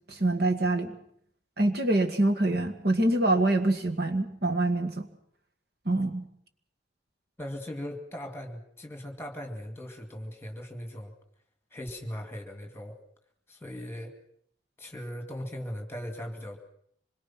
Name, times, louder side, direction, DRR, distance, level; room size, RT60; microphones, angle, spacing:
voice 1, 0.1-0.9 1.6-5.1 5.9-6.3, right 2 dB, 55° right, 5 dB, 1.9 m, -25 dB
voice 2, 7.4-11.1 11.7-13.0 13.5-14.1 14.8-16.6, equal, 15° left, 5 dB, 2.4 m, -39 dB
26.0 x 22.0 x 6.0 m, 0.66 s
head